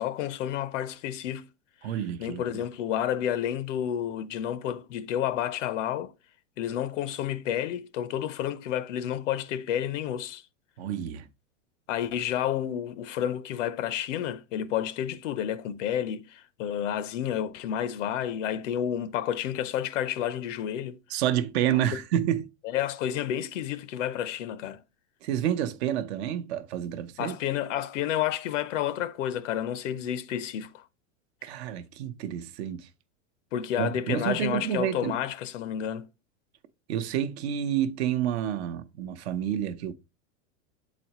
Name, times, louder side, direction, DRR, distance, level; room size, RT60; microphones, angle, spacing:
voice 1, 0.0-1.5 2.2-6.1 6.6-10.4 11.9-21.0 22.6-24.8 27.2-30.8 33.5-36.1, left 10 dB, 70° left, 0.7 m, -30 dB
voice 2, 1.8-2.4 10.8-11.3 21.1-22.4 25.2-27.4 31.4-32.9 33.8-35.1 36.9-39.9, right 10 dB, 55° right, 0.8 m, -29 dB
7.9 x 4.1 x 2.9 m
supercardioid pair, 155°, 38 cm